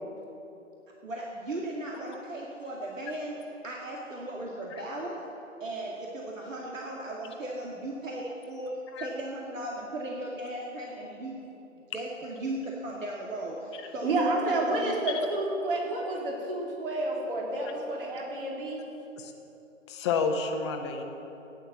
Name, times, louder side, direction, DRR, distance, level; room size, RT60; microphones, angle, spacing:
voice 1, 1.0-5.2 5.6-11.4 11.9-14.9, right 1 dB, 75° right, -2 dB, 2.3 m, -37 dB
voice 2, 14.0-18.8, right 2 dB, 45° right, -2 dB, 3.5 m, -29 dB
voice 3, 19.9-21.0, left 5 dB, 20° left, 4 dB, 1.0 m, -29 dB
14.5 x 10.0 x 7.4 m, 2.9 s
figure-of-eight pair, 145°, 39 cm